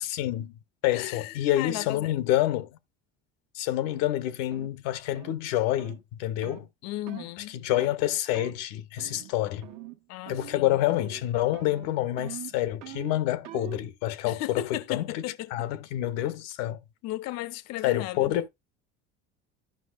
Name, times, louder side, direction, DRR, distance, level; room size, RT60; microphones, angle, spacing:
voice 1, 0.0-0.5 0.8-2.7 3.5-6.7 7.5-9.7 10.3-15.2 15.5-16.8 17.8-18.5, left 14 dB, 90° left, 0.7 m, -28 dB
voice 2, 0.9-2.2 6.8-7.6 10.1-10.8 14.2-15.5 17.0-18.4, left 15 dB, 60° left, 0.5 m, -35 dB
sound 1, 3.9-4.1 4.5-4.7 5.1-5.4 5.8-6.0 6.4-6.7 7.1-7.3 7.7-8.0 8.3-8.6 9.0-9.3 9.6-10.0 10.3-10.6 10.9-11.2 11.5-13.9, right 13 dB, 65° right, 1.0 m, -43 dB
12.0 x 5.5 x 2.3 m
cardioid pair, 115°, 30 cm